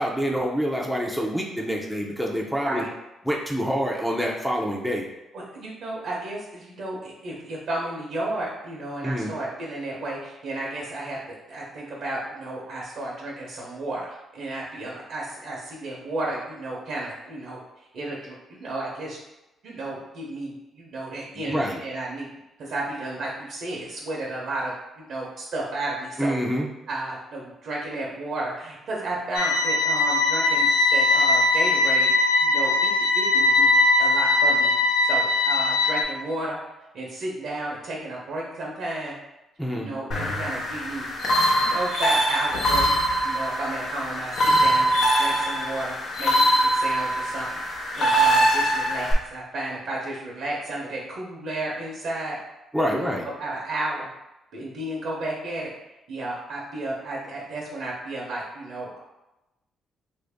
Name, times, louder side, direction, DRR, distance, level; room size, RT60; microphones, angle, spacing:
voice 1, 0.0-2.8 3.2-5.0 9.0-9.3 21.4-21.8 26.2-26.7 39.6-39.9 52.7-53.2, equal, ahead, -2 dB, 0.5 m, -26 dB
voice 2, 5.3-11.2 11.5-19.2 19.6-22.3 22.6-26.4 26.9-32.1 32.4-33.7 34.0-34.7 35.0-36.6 36.9-39.2 39.7-41.1 41.6-42.9 43.2-44.9 45.2-47.6 47.9-52.4 52.8-53.1 53.4-54.1 54.5-55.7 56.1-59.0, right 2 dB, 70° right, -3 dB, 0.8 m, -33 dB
sound 1, 29.3-36.0, left 2 dB, 85° left, 0.3 m, -20 dB
sound 2, 40.1-49.1, right 1 dB, 65° left, 0.7 m, -23 dB
3.0 x 2.6 x 3.5 m, 0.96 s
cardioid pair, 90°, 0 cm